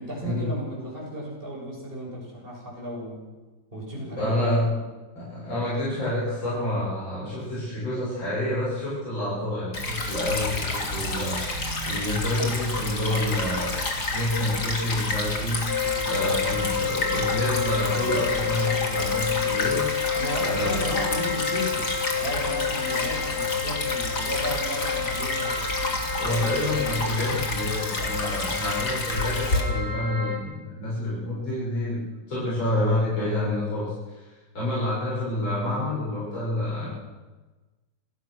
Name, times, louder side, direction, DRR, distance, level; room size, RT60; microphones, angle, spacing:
voice 1, 0.0-3.2 3.7-4.8 15.8-16.3 20.1-21.8 22.1-25.7, equal, 25° right, -4 dB, 7.5 m, -34 dB
voice 2, 4.2-4.7 5.2-13.8 14.1-15.6 16.1-19.9 20.4-20.9 26.1-32.0 32.3-34.2 34.5-36.9, left 1 dB, 80° left, -9 dB, 7.8 m, -28 dB
Stream / Trickle dribble, 9.7-29.6, left 2 dB, 55° left, 3.5 m, -30 dB
sound 1, 15.7-30.4, left 7 dB, 30° left, 2.6 m, -30 dB
27.5 x 15.0 x 6.5 m, 1.2 s
omnidirectional pair, 2.1 m